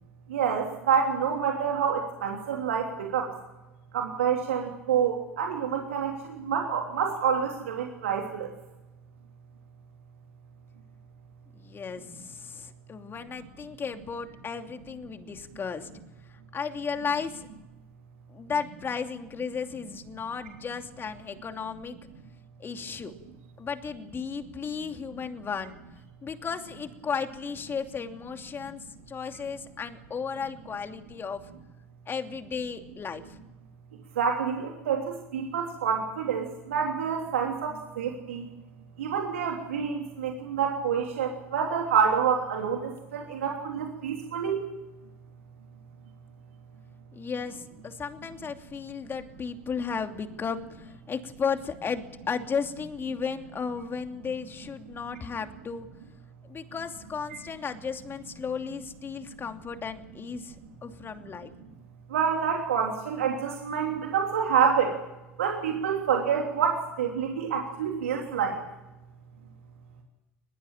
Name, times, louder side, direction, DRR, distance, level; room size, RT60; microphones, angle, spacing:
voice 1, 0.3-3.3 3.9-8.5 34.2-38.5 39.0-44.6 62.1-65.0 65.4-68.6, right 7 dB, 75° right, 1 dB, 3.1 m, -27 dB
voice 2, 11.5-15.9 16.5-17.5 18.3-22.0 22.6-23.1 23.6-25.8 26.2-31.4 32.1-33.4 47.1-55.9 56.4-61.5, left 6 dB, 30° left, 6 dB, 2.8 m, -34 dB
22.0 x 21.5 x 8.8 m, 1.0 s
figure-of-eight pair, 65°, 7 cm